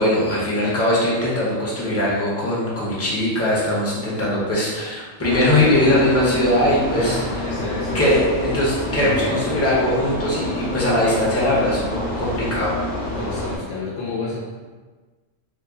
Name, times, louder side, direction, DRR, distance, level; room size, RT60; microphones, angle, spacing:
voice 1, 0.0-7.2 7.9-12.7, left 1 dB, 15° left, -7 dB, 0.6 m, -20 dB
sound 1, 5.2-13.6, left 1 dB, 50° left, 0.9 m, -28 dB
voice 2, 6.8-8.1 8.9-9.4 13.0-14.4, left 3 dB, 80° left, -6 dB, 1.0 m, -30 dB
2.9 x 2.1 x 3.6 m, 1.3 s
omnidirectional pair, 1.3 m